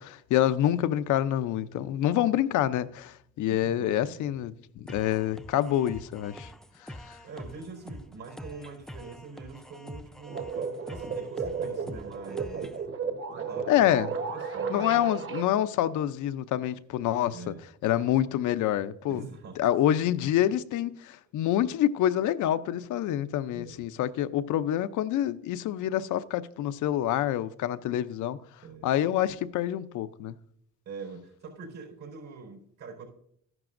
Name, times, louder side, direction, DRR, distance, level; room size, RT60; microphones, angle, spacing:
voice 1, 0.0-6.5 7.1-7.2 13.7-14.1 14.7-17.5 17.8-19.2 19.6-28.4 28.8-30.4, left 12 dB, 80° left, 0.6 m, -27 dB
voice 2, 3.5-4.2 7.2-12.8 13.3-15.1 17.3-17.6 19.1-19.6 23.5-23.8 28.6-28.9 30.8-33.1, right 4 dB, 75° right, 4.6 m, -44 dB
sound 1, 4.9-12.9, equal, ahead, 0.5 m, -45 dB
sound 2, 10.3-15.4, right 5 dB, 45° right, 1.3 m, -34 dB
13.5 x 11.0 x 2.5 m
cardioid pair, 90°, 30 cm